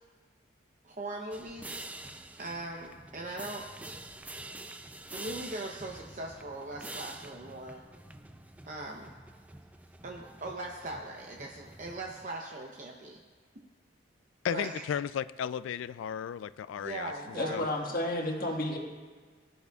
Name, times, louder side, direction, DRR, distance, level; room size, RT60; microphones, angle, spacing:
voice 1, 0.8-1.8 2.4-3.7 5.1-7.8 8.7-9.1 10.0-13.2 14.5-14.8 16.8-17.8, right 2 dB, 40° right, 0 dB, 0.7 m, -40 dB
sound 1, 1.3-12.3, right 2 dB, 10° right, 0.3 m, -47 dB
voice 2, 14.4-17.1 17.5-17.7, left 8 dB, 85° left, 16 dB, 0.3 m, -34 dB
voice 3, 17.3-18.8, left 1 dB, 50° left, 0 dB, 1.6 m, -31 dB
18.5 x 11.0 x 2.3 m, 1.5 s
head